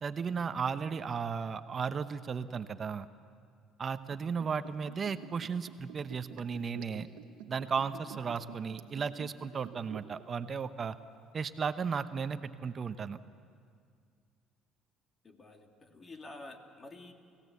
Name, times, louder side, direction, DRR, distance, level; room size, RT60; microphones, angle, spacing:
voice 1, 0.0-3.1 3.8-7.1 7.5-11.0 11.3-13.2, right 6 dB, 40° right, 11 dB, 0.8 m, -35 dB
Liquid, 4.1-10.2 10.5-10.6, right 11 dB, 90° right, 1.2 m, -49 dB
voice 2, 15.2-17.1, left 2 dB, 30° left, 4 dB, 2.5 m, -49 dB
28.5 x 16.5 x 8.3 m, 2.2 s
supercardioid pair, 90°, 0 cm